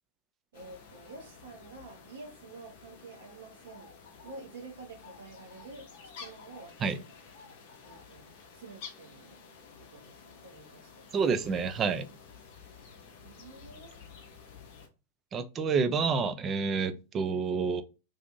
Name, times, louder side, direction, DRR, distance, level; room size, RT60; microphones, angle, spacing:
sound 1, 0.5-14.9, left 5 dB, 50° left, 0.6 m, -51 dB
voice 1, 0.5-3.9 4.2-5.9 6.2-7.0 7.8-9.4 9.8-11.1 13.2-14.0, right 3 dB, 60° right, 0.8 m, -49 dB
voice 2, 11.1-12.0 15.3-17.8, right 5 dB, 25° right, 0.3 m, -28 dB
2.6 x 2.5 x 2.4 m
figure-of-eight pair, 90°, 0 cm